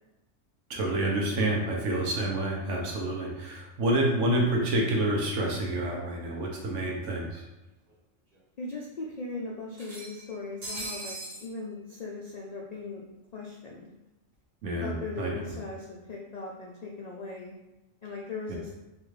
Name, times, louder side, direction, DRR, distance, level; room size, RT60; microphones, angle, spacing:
voice 1, 0.7-7.4 14.6-15.3, right 1 dB, 75° right, -1 dB, 1.1 m, -28 dB
sound 1, 6.3-6.4 6.7-6.8 7.9-8.0 8.3-8.4 9.7-11.5, right 2 dB, 50° right, 1.3 m, -40 dB
voice 2, 8.6-11.2 11.4-13.0 13.3-13.9 14.7-17.5 18.0-18.7, left 3 dB, 65° left, -3 dB, 0.4 m, -39 dB
3.9 x 2.5 x 3.2 m, 1.0 s
omnidirectional pair, 1.3 m